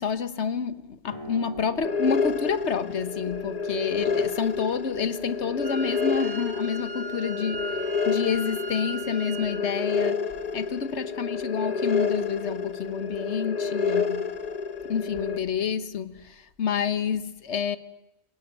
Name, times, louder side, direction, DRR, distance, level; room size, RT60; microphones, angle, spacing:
voice 1, 0.0-10.2 10.5-14.3 14.8-17.8, left 6 dB, 55° left, 1.3 m, -29 dB
sound 1, 1.1-8.3, right 3 dB, 25° right, 4.5 m, -47 dB
sound 2, 1.8-15.4, left 5 dB, 30° left, 1.0 m, -29 dB
Wind instrument woodwind instrument, 5.6-9.6, right 2 dB, 50° right, 3.2 m, -38 dB
22.5 x 19.0 x 9.2 m
omnidirectional pair, 1.4 m